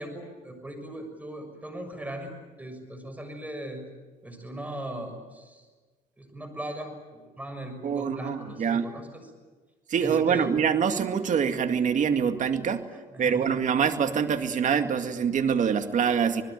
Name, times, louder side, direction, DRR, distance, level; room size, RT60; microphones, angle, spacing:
voice 1, 0.0-2.3 2.6-3.8 4.2-5.6 6.2-9.3 10.0-10.5 13.1-13.6, right 1 dB, 10° right, 7 dB, 6.5 m, -39 dB
voice 2, 7.8-8.9 9.9-12.9 13.2-16.4, right 7 dB, 45° right, 8 dB, 2.2 m, -25 dB
27.0 x 20.5 x 9.4 m, 1.3 s
cardioid pair, 110°, 17 cm